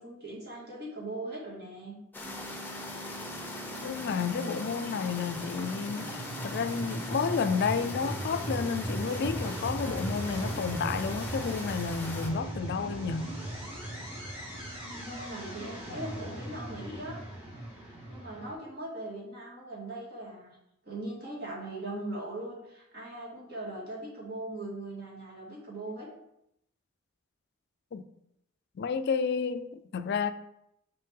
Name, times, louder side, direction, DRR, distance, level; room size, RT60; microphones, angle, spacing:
voice 1, 0.0-2.0 14.9-17.2 17.8-20.6 20.8-26.1, right 1 dB, 50° right, 2.3 m, -40 dB
sound 1, 2.1-12.3, left 2 dB, 10° left, 0.7 m, -41 dB
sound 2, 2.2-18.5, right 1 dB, 30° right, 2.6 m, -38 dB
voice 2, 3.8-13.4 27.9-28.0 28.8-30.3, left 5 dB, 55° left, 0.4 m, -31 dB
5.5 x 5.5 x 3.7 m
head